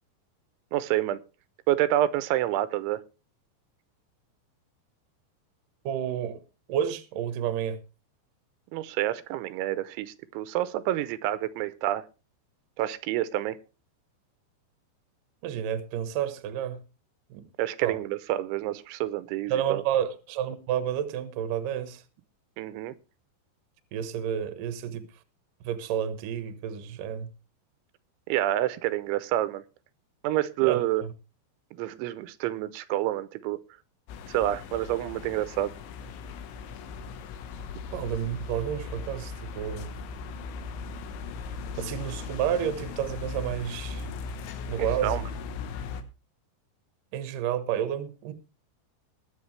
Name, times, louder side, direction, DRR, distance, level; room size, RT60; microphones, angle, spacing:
voice 1, 0.7-1.2 1.7-3.0 8.7-12.1 12.8-13.6 17.6-19.8 22.6-22.9 28.3-29.6 30.2-31.0 31.7-33.6 34.3-35.7 44.8-45.2, right 13 dB, 90° right, 3.1 m, -28 dB
voice 2, 5.8-6.4 6.7-7.8 15.4-16.8 17.3-17.5 17.8-18.0 19.5-22.0 23.9-25.0 25.6-27.3 30.6-30.8 37.9-39.9 41.7-44.1 44.7-45.2 47.1-48.3, right 9 dB, 65° right, 2.3 m, -30 dB
sound 1, 34.1-46.0, left 4 dB, 90° left, 3.6 m, -38 dB
21.0 x 8.0 x 3.2 m
omnidirectional pair, 5.2 m